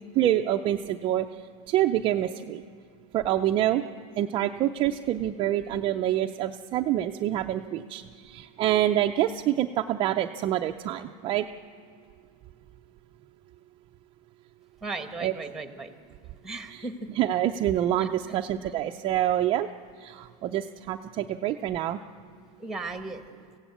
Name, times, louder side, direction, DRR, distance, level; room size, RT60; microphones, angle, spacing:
voice 1, 0.1-1.4 1.7-2.6 3.1-3.8 4.2-11.5 15.2-15.3 16.7-16.9 17.2-19.7 20.0-22.0, right 12 dB, 30° right, 4 dB, 0.5 m, -26 dB
voice 2, 14.8-15.9 16.4-17.1 18.0-18.1 18.6-18.7 22.6-23.3, right 3 dB, 5° right, 7 dB, 1.2 m, -36 dB
26.5 x 16.0 x 8.4 m, 2.1 s
supercardioid pair, 165°, 18 cm